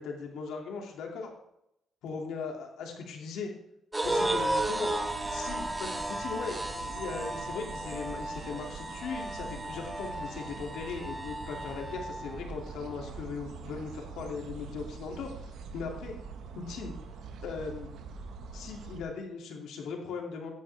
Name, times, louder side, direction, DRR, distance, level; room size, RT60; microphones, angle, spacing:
voice 1, 0.0-1.3 2.0-3.5 4.0-4.9 5.3-15.3 15.7-16.1 16.6-17.0 17.4-17.9 18.5-20.5, left 5 dB, 80° left, 1 dB, 2.6 m, -38 dB
sound 1, 3.9-12.3, right 1 dB, 15° right, 1.3 m, -34 dB
sound 2, 4.0-19.0, right 5 dB, 80° right, 1.5 m, -44 dB
13.5 x 10.0 x 3.5 m, 0.80 s
cardioid pair, 90°, 0 cm